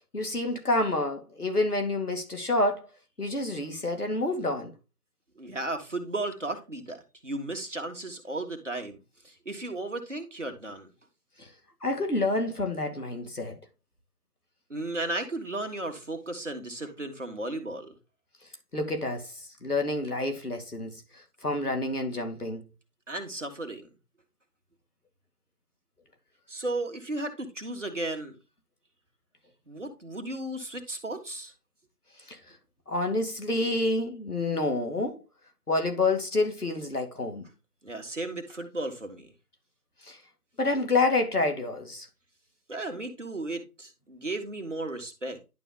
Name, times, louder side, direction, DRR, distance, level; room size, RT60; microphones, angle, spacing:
voice 1, 0.1-2.9 3.2-4.7 11.4-11.5 11.8-13.6 18.7-19.3 19.6-21.0 21.4-22.6 32.3-32.4 32.9-35.2 35.7-37.5 40.0-40.2 40.6-42.1, left 2 dB, 70° left, 2.4 m, -28 dB
voice 2, 5.3-9.0 9.2-10.9 14.7-17.9 23.1-23.9 26.5-28.3 29.7-31.5 37.8-39.3 42.7-45.4, right 2 dB, 50° right, 1.7 m, -35 dB
11.0 x 5.2 x 2.4 m
figure-of-eight pair, 175°, 46 cm